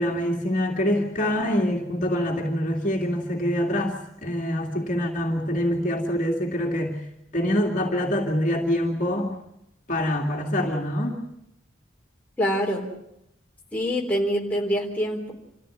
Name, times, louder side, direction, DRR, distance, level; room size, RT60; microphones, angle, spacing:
voice 1, 0.0-7.0 7.3-9.3 9.9-11.2, left 1 dB, 40° left, -1 dB, 2.6 m, -25 dB
voice 2, 12.4-12.9 13.7-15.3, equal, 10° left, -2 dB, 4.1 m, -25 dB
27.0 x 15.0 x 9.1 m, 0.83 s
head